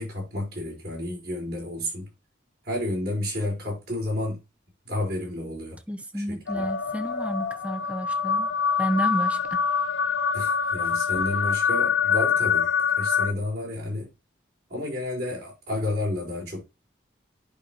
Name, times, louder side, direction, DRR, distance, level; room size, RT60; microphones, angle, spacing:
voice 1, 0.0-2.1 2.6-4.4 4.8-5.8 6.1-6.6 10.3-12.7 13.0-14.1 14.7-16.6, left 1 dB, 55° right, 4.7 m, -31 dB
voice 2, 5.9-8.5 8.8-9.6, equal, 5° right, 0.6 m, -31 dB
sound 1, 6.5-13.3, left 6 dB, 85° left, 0.5 m, -25 dB
10.0 x 5.3 x 3.0 m
head